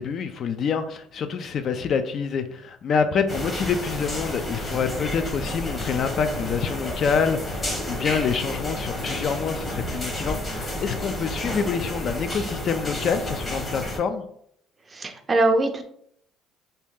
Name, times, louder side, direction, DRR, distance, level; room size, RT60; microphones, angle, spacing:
voice 1, 0.0-14.2, left 6 dB, 45° left, 9 dB, 0.3 m, -26 dB
sound 1, 3.3-14.0, left 1 dB, 20° left, 0.9 m, -31 dB
voice 2, 14.9-15.8, right 2 dB, 20° right, 6 dB, 0.4 m, -22 dB
3.0 x 2.7 x 3.5 m, 0.68 s
cardioid pair, 140°, 0 cm